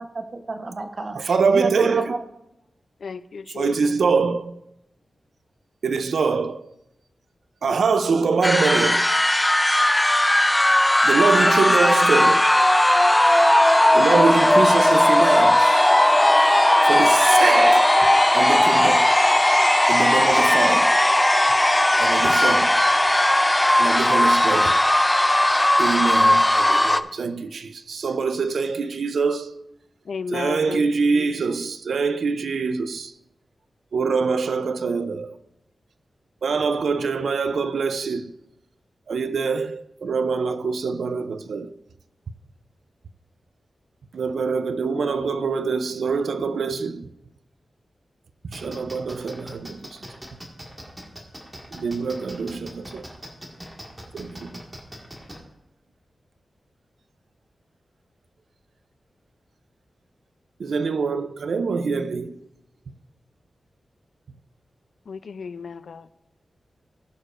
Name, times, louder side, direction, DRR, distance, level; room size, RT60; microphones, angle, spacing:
voice 1, 0.0-2.2, right 3 dB, 45° right, 0.9 m, -30 dB
voice 2, 1.3-2.1 3.6-4.6 5.8-6.7 7.6-9.1 11.0-12.4 13.9-15.9 16.8-18.0 18.3-19.1 19.9-20.9 22.0-22.8 23.8-24.8 25.8-29.6 30.3-33.1 33.9-35.3 36.4-38.3 39.1-41.7 44.1-47.1 48.5-50.0 51.7-53.1 54.1-54.6 60.6-62.4, right 5 dB, 85° right, 0.5 m, -24 dB
voice 3, 3.0-3.9 30.1-30.8 31.1-31.5 65.1-66.1, left 5 dB, 70° left, 0.5 m, -34 dB
sound 1, 8.4-27.0, left 1 dB, 10° left, 0.3 m, -17 dB
sound 2, 48.5-55.4, equal, 15° right, 1.8 m, -40 dB
19.5 x 6.5 x 2.5 m
wide cardioid pair, 160°, 0 cm